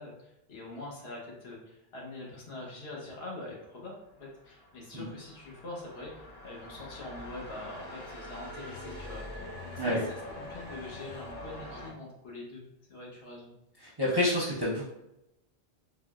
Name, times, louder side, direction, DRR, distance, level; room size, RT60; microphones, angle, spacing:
voice 1, 0.0-3.9 4.2-12.6 12.9-13.5, left 2 dB, 80° left, -4 dB, 1.1 m, -44 dB
sound 1, 4.0-11.9, left 1 dB, 50° left, 0.9 m, -44 dB
voice 2, 13.8-14.8, left 1 dB, 30° right, -6 dB, 0.5 m, -28 dB
3.7 x 2.1 x 2.3 m, 0.87 s
omnidirectional pair, 1.0 m